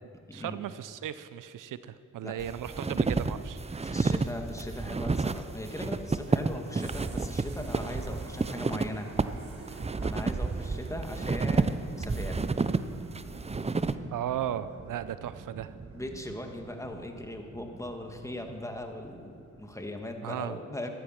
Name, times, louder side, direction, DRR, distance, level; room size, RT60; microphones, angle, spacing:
voice 1, 0.3-4.1 14.1-15.7 20.2-20.6, right 10 dB, 70° right, 14 dB, 0.7 m, -36 dB
sound 1, 2.4-13.9, right 4 dB, 20° right, 0.7 m, -30 dB
voice 2, 3.8-9.1 9.6-12.5 15.9-20.9, left 1 dB, 10° left, 4 dB, 2.2 m, -39 dB
sound 2, 4.4-20.2, right 4 dB, 40° right, 1.7 m, -47 dB
14.0 x 12.5 x 6.0 m, 2.3 s
supercardioid pair, 45°, 34 cm